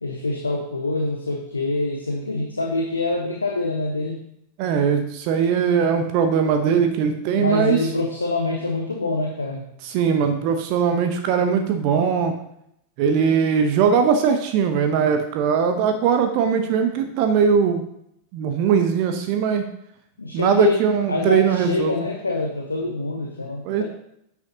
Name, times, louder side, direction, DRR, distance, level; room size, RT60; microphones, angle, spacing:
voice 1, 0.0-4.2 7.3-9.7 20.2-23.8, left 2 dB, 80° left, 2 dB, 0.9 m, -25 dB
voice 2, 4.6-7.8 9.8-12.3 13.0-17.8 18.3-19.6 20.3-22.0 23.6-23.8, right 6 dB, 45° right, 6 dB, 0.8 m, -20 dB
9.4 x 8.5 x 2.8 m, 0.76 s
figure-of-eight pair, 90°, 0 cm